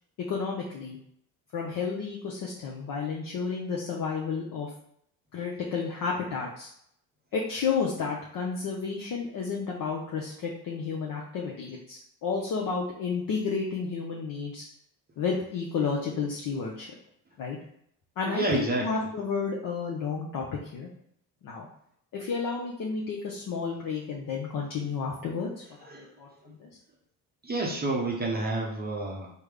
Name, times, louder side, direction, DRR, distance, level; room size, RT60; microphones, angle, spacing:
voice 1, 0.2-1.0 1.5-4.7 5.3-6.7 7.3-14.6 15.2-16.9 17.4-17.6 18.2-20.9 21.4-21.7 22.1-25.5 25.8-26.7, left 5 dB, 45° left, -2 dB, 0.6 m, -31 dB
voice 2, 18.3-18.9 25.9-26.1 27.4-29.3, right 2 dB, 20° right, -1 dB, 0.6 m, -29 dB
3.4 x 2.1 x 3.3 m, 0.71 s
hypercardioid pair, 60°, 45 cm